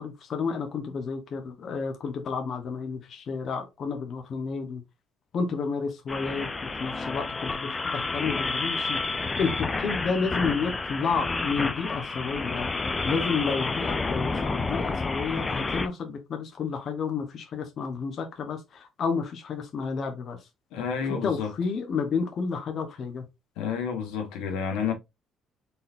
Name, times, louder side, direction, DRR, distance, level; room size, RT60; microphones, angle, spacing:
voice 1, 0.0-4.8 5.3-9.0 9.4-12.7 13.0-20.4 21.1-23.2, left 5 dB, 50° left, 1.0 m, -31 dB
sound 1, 6.1-15.9, left 3 dB, 25° left, 0.6 m, -30 dB
voice 2, 20.7-21.5 23.6-24.9, left 6 dB, 90° left, 1.3 m, -30 dB
4.1 x 3.8 x 2.6 m
cardioid pair, 100°, 0 cm